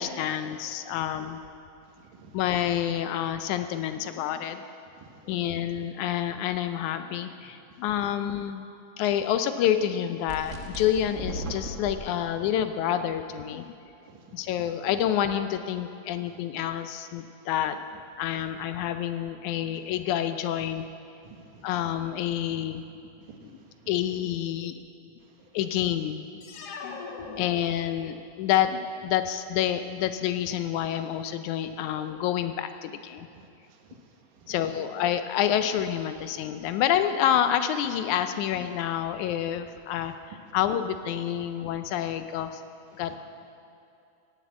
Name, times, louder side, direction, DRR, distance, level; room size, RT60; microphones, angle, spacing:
voice 1, 0.0-1.4 2.3-4.6 5.3-8.6 9.0-13.7 14.3-17.8 18.2-20.9 21.6-22.8 23.9-24.8 25.5-26.3 26.8-27.0 27.2-33.3 34.5-40.1 40.5-42.6 43.0-43.2, left 10 dB, 80° left, 9 dB, 1.9 m, -28 dB
voice 2, 1.8-2.4 4.9-5.6 7.7-8.1 12.4-12.5 14.0-14.7 16.3-16.4 17.2-17.5 19.5-19.7 21.2-21.9 22.5-22.7 23.0-23.9 25.2-25.6 26.7-27.4 33.3-34.9 39.9-40.6 42.9-43.2, right 5 dB, 85° right, 2 dB, 3.0 m, -53 dB
sound 1, 10.3-11.9, equal, 50° right, 0.8 m, -36 dB
sound 2, 26.4-28.3, left 4 dB, 60° left, 1.8 m, -40 dB
16.0 x 8.3 x 8.1 m, 2.6 s
omnidirectional pair, 3.7 m